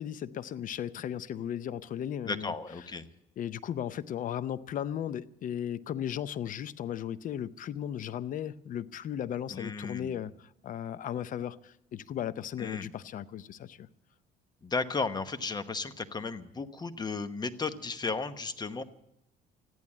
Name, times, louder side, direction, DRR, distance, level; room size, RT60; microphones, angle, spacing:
voice 1, 0.0-2.5 3.4-13.9, left 10 dB, 50° left, 0.6 m, -36 dB
voice 2, 2.3-3.0 9.5-10.2 12.6-12.9 14.6-18.8, left 4 dB, 25° left, 1.0 m, -34 dB
14.5 x 11.0 x 8.4 m
cardioid pair, 110°, 17 cm